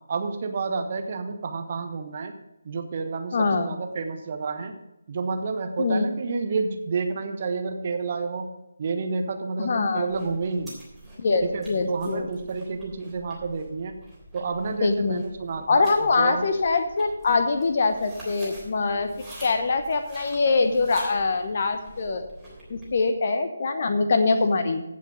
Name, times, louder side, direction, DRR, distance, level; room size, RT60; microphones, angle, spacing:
voice 1, 0.1-2.3 2.6-4.7 5.1-8.5 8.8-10.7 11.4-13.9 14.3-16.4, right 4 dB, 35° right, 6 dB, 1.1 m, -30 dB
voice 2, 3.3-3.7 5.8-6.1 9.6-10.1 11.2-12.3 14.8-15.2 15.7-22.3 22.7-24.8, left 4 dB, 40° left, 8 dB, 0.8 m, -23 dB
sound 1, 10.1-23.0, right 1 dB, ahead, 3.4 m, -46 dB
15.5 x 5.6 x 5.0 m, 0.92 s
figure-of-eight pair, 150°, 0 cm